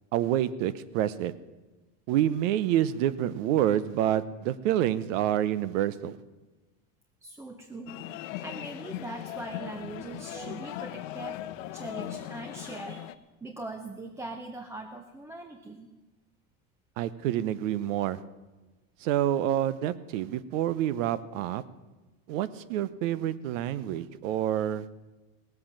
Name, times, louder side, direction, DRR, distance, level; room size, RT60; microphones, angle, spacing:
voice 1, 0.1-1.3 2.1-6.2 17.0-18.2 19.0-21.6 22.3-24.8, right 11 dB, 75° right, 17 dB, 0.9 m, -27 dB
voice 2, 7.2-8.0 8.4-11.4 11.7-13.1 13.4-15.9, right 2 dB, 5° right, 6 dB, 0.5 m, -41 dB
sound 1, 7.9-13.1, left 13 dB, 75° left, 0.8 m, -39 dB
18.0 x 7.9 x 7.3 m, 1.2 s
supercardioid pair, 145°, 39 cm